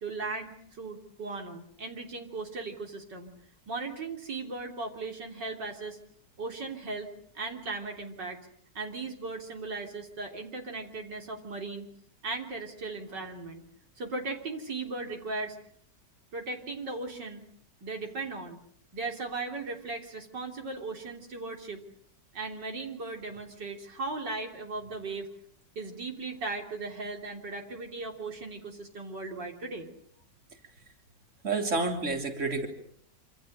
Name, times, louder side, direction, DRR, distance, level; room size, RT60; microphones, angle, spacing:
voice 1, 0.0-3.3 3.7-6.0 6.4-7.1 7.3-8.4 8.8-11.9 12.2-13.6 14.0-15.6 16.3-17.4 17.8-18.6 18.9-21.8 22.3-25.3 25.8-29.9, right 3 dB, 80° right, 3 dB, 4.0 m, -37 dB
voice 2, 31.4-32.7, right 3 dB, 45° right, 4 dB, 3.8 m, -29 dB
27.0 x 26.0 x 6.6 m, 0.64 s
omnidirectional pair, 1.9 m